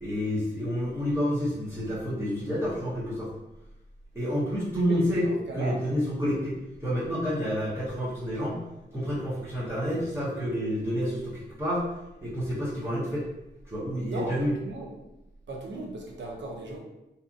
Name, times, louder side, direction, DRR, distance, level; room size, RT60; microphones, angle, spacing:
voice 1, 0.0-3.3 4.1-5.3 5.5-8.6 8.9-11.9 12.2-13.2 13.6-14.5, equal, 15° right, -9 dB, 0.9 m, -29 dB
voice 2, 4.9-5.8 14.1-14.9 15.5-16.8, right 2 dB, 75° right, 0 dB, 0.6 m, -37 dB
2.8 x 2.4 x 2.4 m, 0.93 s
wide cardioid pair, 100°, 19 cm